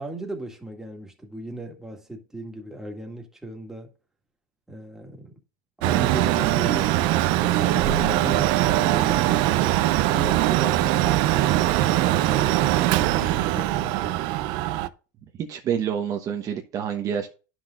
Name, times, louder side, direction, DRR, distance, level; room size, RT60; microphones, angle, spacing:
voice 1, 0.0-3.9 4.7-5.3 5.8-7.1 7.4-9.5, right 1 dB, 5° right, 1.9 m, -36 dB
Mechanical fan, 5.8-14.9, right 15 dB, 55° right, 0.6 m, -21 dB
voice 2, 15.4-17.3, right 8 dB, 35° right, 1.1 m, -27 dB
10.5 x 6.2 x 2.4 m
supercardioid pair, 115°, 10 cm